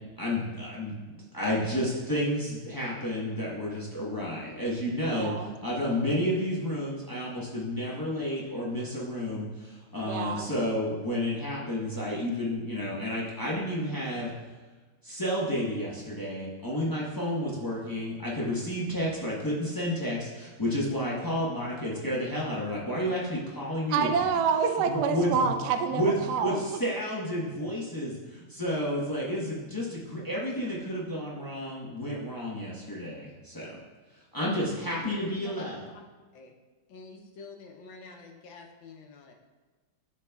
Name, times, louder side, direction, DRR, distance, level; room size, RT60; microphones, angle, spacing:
voice 1, 0.2-14.3 15.0-24.3 24.9-25.5 25.9-33.8 34.3-35.9, equal, 35° left, -6 dB, 0.3 m, -31 dB
voice 2, 5.1-5.5 10.1-10.5 23.9-26.0 26.3-26.6, right 6 dB, 80° right, 6 dB, 0.9 m, -27 dB
voice 3, 34.8-35.9 36.3-36.5 36.9-39.3, left 4 dB, 70° left, 2 dB, 1.5 m, -48 dB
12.0 x 4.1 x 2.3 m, 1.3 s
omnidirectional pair, 2.3 m